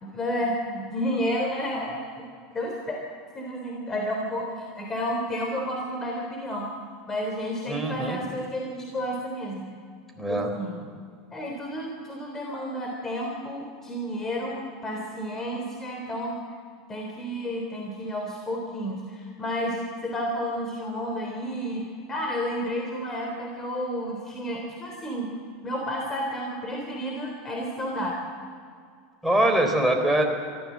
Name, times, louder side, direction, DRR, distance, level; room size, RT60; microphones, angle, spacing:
voice 1, 0.0-2.0 2.5-3.0 3.3-6.7 7.1-9.7 10.3-10.8 11.3-16.4 16.9-25.3 25.6-28.2, equal, 20° left, 0 dB, 3.6 m, -31 dB
voice 2, 7.7-8.2 10.2-10.5 29.2-30.2, right 1 dB, ahead, 4 dB, 3.9 m, -23 dB
23.5 x 15.0 x 7.6 m, 2.2 s
supercardioid pair, 120°, 2 cm